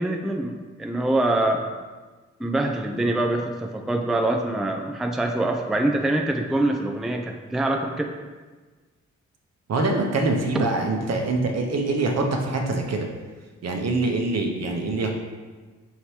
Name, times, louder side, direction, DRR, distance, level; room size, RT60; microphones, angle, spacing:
voice 1, 0.0-1.6 2.4-8.1 10.5-10.7, right 1 dB, ahead, 3 dB, 0.4 m, -24 dB
voice 2, 9.7-13.1 13.6-15.1, right 2 dB, 55° right, 2 dB, 0.8 m, -24 dB
5.7 x 3.2 x 2.8 m, 1.4 s
supercardioid pair, 45°, 32 cm